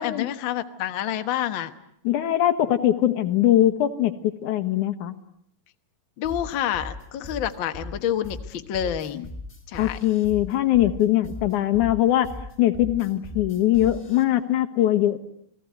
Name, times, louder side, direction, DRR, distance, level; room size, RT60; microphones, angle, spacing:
voice 1, 0.0-1.7 6.2-9.3 9.7-10.0, left 10 dB, 90° left, 8 dB, 1.0 m, -28 dB
voice 2, 2.0-4.1 4.4-5.2 9.8-12.3 12.6-15.2, left 13 dB, 65° left, 10 dB, 2.5 m, -21 dB
sound 1, 6.2-14.2, left 1 dB, 20° left, 3.3 m, -38 dB
29.5 x 20.0 x 9.4 m, 0.71 s
omnidirectional pair, 4.4 m